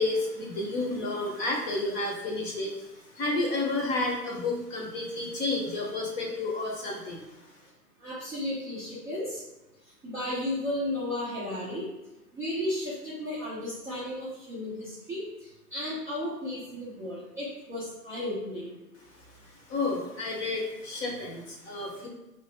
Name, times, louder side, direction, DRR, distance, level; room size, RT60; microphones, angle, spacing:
voice 1, 0.0-7.2 19.7-22.1, left 2 dB, 25° left, -1 dB, 0.9 m, -31 dB
voice 2, 8.0-9.4 10.0-11.9 12.3-18.8, left 1 dB, 5° right, -13 dB, 0.6 m, -34 dB
4.6 x 2.9 x 3.5 m, 0.97 s
hypercardioid pair, 125°, 50 cm